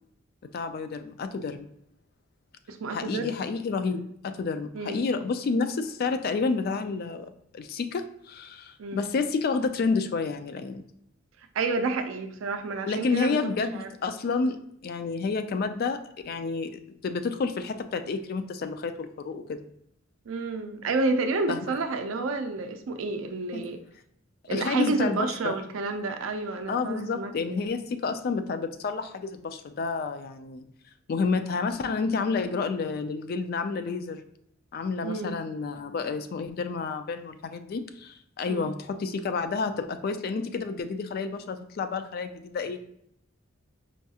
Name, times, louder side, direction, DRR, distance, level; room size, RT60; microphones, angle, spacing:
voice 1, 0.5-1.7 2.9-10.8 12.9-19.6 21.5-21.6 23.5-23.7 24.5-25.6 26.7-30.7 31.1-34.2 34.7-42.8, left 4 dB, 50° left, 9 dB, 0.3 m, -30 dB
voice 2, 2.7-3.3 4.7-5.0 8.8-9.0 11.5-13.9 20.3-23.8 24.5-27.6 35.0-35.4 38.5-38.7, right 3 dB, 75° right, 7 dB, 0.4 m, -30 dB
4.5 x 2.3 x 2.7 m, 0.71 s
head